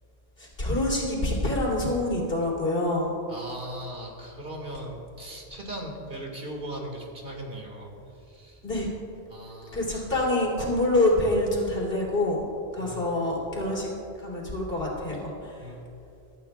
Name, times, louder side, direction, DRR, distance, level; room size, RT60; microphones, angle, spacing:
voice 1, 0.4-3.1 8.6-8.9 9.7-12.5 12.7-13.9 14.2-15.6, left 1 dB, 65° left, -4 dB, 3.5 m, -26 dB
voice 2, 3.3-7.9 8.2-8.6 9.3-10.1 12.8-13.3 15.6-15.9, right 1 dB, 55° right, 0 dB, 2.2 m, -39 dB
23.5 x 12.0 x 2.4 m, 2.7 s
omnidirectional pair, 1.1 m